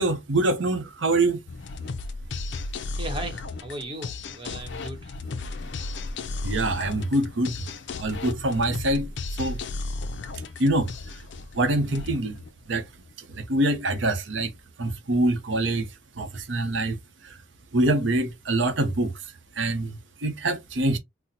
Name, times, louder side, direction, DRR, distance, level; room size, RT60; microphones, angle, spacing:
voice 1, 0.0-1.4 6.4-7.5 8.0-9.1 9.4-9.6 10.6-10.9 11.6-12.3 12.7-12.8 13.3-14.5 14.8-15.9 16.2-17.0 17.7-19.1 19.6-21.0, right 2 dB, 70° right, 0.8 m, -24 dB
sound 1, 1.5-13.1, left 3 dB, 65° left, 0.5 m, -35 dB
voice 2, 2.9-5.1, right 1 dB, 25° right, 1.0 m, -36 dB
4.0 x 2.1 x 2.8 m
head